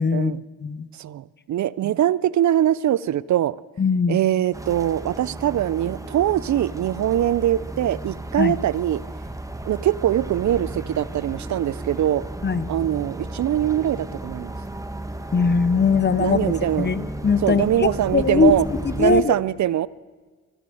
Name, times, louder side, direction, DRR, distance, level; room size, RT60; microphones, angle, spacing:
voice 1, 0.0-0.9 3.8-4.2 8.4-8.5 12.4-12.7 15.3-18.5 19.0-19.3, left 5 dB, 30° left, 16 dB, 0.8 m, -21 dB
voice 2, 0.9-3.6 4.1-9.0 9.6-12.2 12.7-14.5 16.2-16.9 17.4-18.7 19.0-19.9, right 12 dB, 60° right, 20 dB, 0.5 m, -22 dB
sound 1, 4.5-19.2, right 1 dB, 10° right, 1.1 m, -34 dB
13.5 x 12.0 x 7.7 m, 1.4 s
cardioid pair, 60°, 33 cm